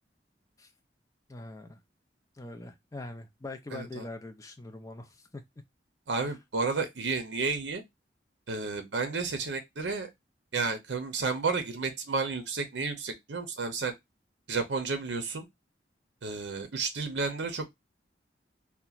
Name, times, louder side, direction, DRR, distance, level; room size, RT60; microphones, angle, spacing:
voice 1, 1.3-1.8 2.4-5.4 6.2-6.4, left 2 dB, 20° left, 0.4 m, -43 dB
voice 2, 3.7-4.1 6.1-7.8 8.5-10.1 10.5-13.9 14.5-15.5 16.2-17.7, right 4 dB, 75° right, 0.6 m, -31 dB
2.9 x 2.2 x 2.3 m
head